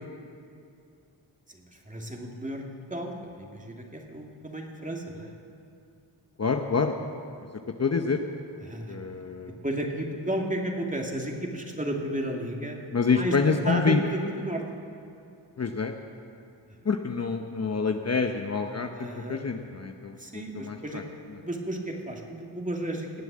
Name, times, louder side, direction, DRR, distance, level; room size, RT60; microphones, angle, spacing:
voice 1, 1.5-2.6 2.9-5.3 8.6-9.0 9.6-12.8 13.1-14.6 18.9-19.4 20.2-23.2, right 1 dB, 15° right, 1 dB, 2.4 m, -33 dB
voice 2, 6.4-7.0 7.8-8.2 8.9-9.6 12.9-14.0 15.6-15.9 16.8-21.0, left 5 dB, 35° left, 5 dB, 0.9 m, -27 dB
18.5 x 7.7 x 7.5 m, 2.5 s
cardioid pair, 55°, 45 cm